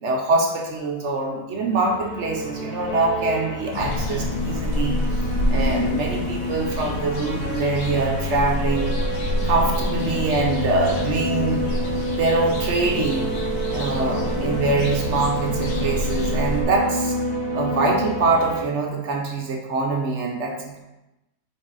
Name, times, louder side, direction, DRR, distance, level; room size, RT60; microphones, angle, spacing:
voice 1, 0.0-9.0 9.4-11.6 12.1-13.3 13.7-17.2 17.5-20.8, right 3 dB, 55° right, 1 dB, 0.9 m, -24 dB
sound 1, 1.6-18.6, left 1 dB, 25° left, 2.5 m, -30 dB
sound 2, 3.7-16.6, left 1 dB, 70° left, 1.4 m, -27 dB
sound 3, 8.7-18.7, right 8 dB, 75° right, 1.2 m, -32 dB
5.8 x 4.6 x 4.0 m, 0.98 s
omnidirectional pair, 1.8 m